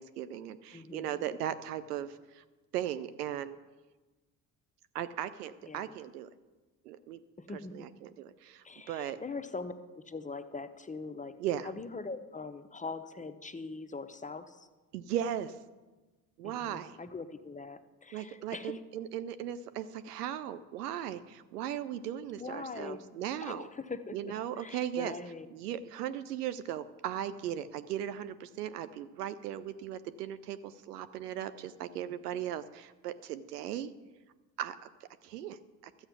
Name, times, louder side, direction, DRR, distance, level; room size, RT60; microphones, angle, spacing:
voice 1, 0.0-2.4 2.7-3.6 4.9-6.3 6.8-7.2 7.7-9.2 11.4-11.7 14.9-15.6 16.4-17.0 18.1-23.7 24.1-25.1 25.5-33.9 34.6-34.9 35.2-35.9, right 10 dB, 85° right, 12 dB, 0.6 m, -37 dB
voice 2, 0.7-1.2 5.6-5.9 7.4-7.7 8.6-11.3 11.6-14.7 16.4-18.8 22.4-23.0 23.4-25.5, left 3 dB, 15° left, 9 dB, 0.8 m, -42 dB
12.5 x 8.0 x 6.0 m, 1.2 s
hypercardioid pair, 55°, 46 cm